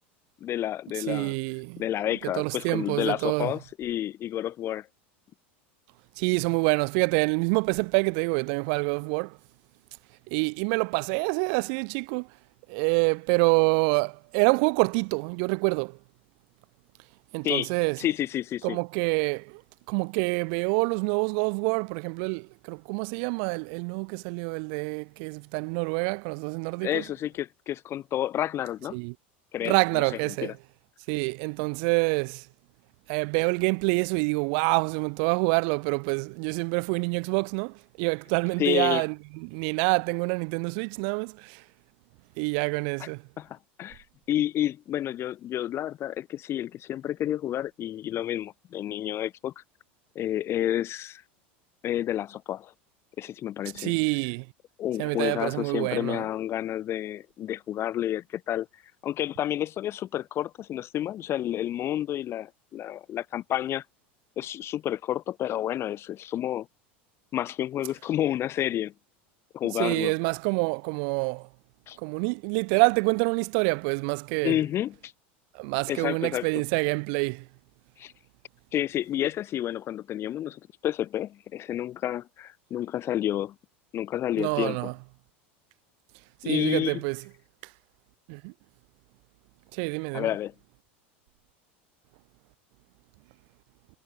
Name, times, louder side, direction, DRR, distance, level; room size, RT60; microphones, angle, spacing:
voice 1, 0.4-1.3 1.8-4.9 17.4-17.7 18.0-18.8 26.8-29.0 29.5-30.5 38.6-39.0 43.0-43.1 43.4-49.6 50.2-51.2 51.8-52.7 53.2-53.9 54.8-58.7 59.0-63.8 64.4-66.7 67.3-68.9 69.5-70.1 71.9-72.0 74.4-75.1 75.9-76.6 78.0-78.1 78.7-83.6 83.9-84.9 86.4-87.0 90.1-90.5, left 12 dB, 40° left, 7.0 m, -30 dB
voice 2, 1.1-1.8 2.2-3.5 6.2-9.4 10.3-12.3 12.7-16.0 17.3-18.0 18.6-19.6 19.9-27.0 28.9-29.1 29.6-30.5 31.1-32.4 33.1-39.1 39.4-41.6 42.4-43.2 53.7-54.5 55.0-56.2 69.8-71.5 72.0-74.6 75.5-77.5 84.4-84.9 86.4-87.2 88.3-88.5 89.7-90.3, right 40 dB or more, 65° right, 4.9 m, -27 dB
hypercardioid pair, 95°, 6 cm